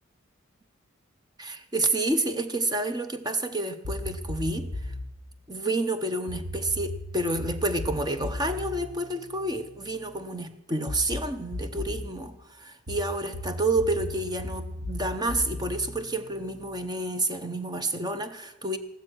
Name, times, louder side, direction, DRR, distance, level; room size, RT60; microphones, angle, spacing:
voice 1, 1.4-4.9 5.5-18.8, right 2 dB, 20° right, 9 dB, 0.8 m, -29 dB
sound 1, 3.8-5.1 6.3-10.0 10.9-12.1 12.9-16.8, left 1 dB, 85° right, 2.0 m, -36 dB
15.0 x 12.5 x 6.2 m, 0.87 s
head